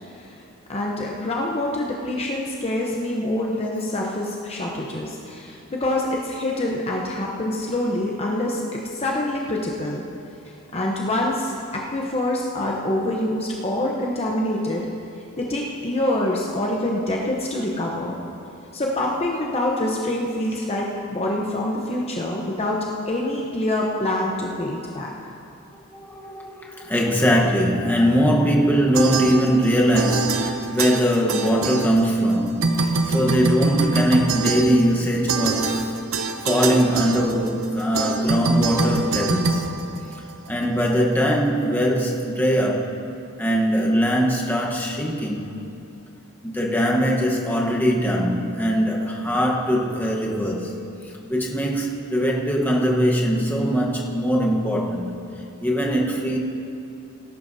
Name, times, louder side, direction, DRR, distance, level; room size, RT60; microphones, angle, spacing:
voice 1, 0.7-10.0 10.4-14.8 15.4-18.2 18.7-25.1, left 1 dB, 30° left, -2 dB, 0.8 m, -26 dB
voice 2, 25.9-36.0 36.5-39.7 40.5-42.9 43.4-45.5 46.4-50.7 51.3-55.2 55.6-56.4, equal, 10° left, -2 dB, 1.1 m, -21 dB
sound 1, 28.9-29.7 29.9-32.3 32.6-40.5, right 3 dB, 70° right, 0.7 m, -24 dB
18.5 x 11.5 x 2.7 m, 2.7 s
head